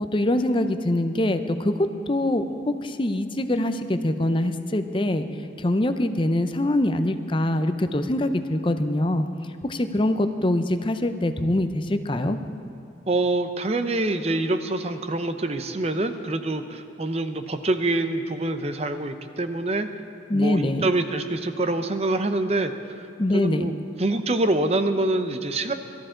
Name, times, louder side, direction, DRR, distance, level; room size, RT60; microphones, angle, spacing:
voice 1, 0.0-5.2 5.6-9.2 9.6-12.4 20.3-20.9 23.2-23.7, left 1 dB, 25° left, 9 dB, 0.6 m, -24 dB
voice 2, 13.1-19.9 20.3-22.7 23.3-23.7 24.0-25.7, right 2 dB, 35° right, 9 dB, 0.7 m, -25 dB
22.0 x 13.5 x 3.8 m, 2.9 s
head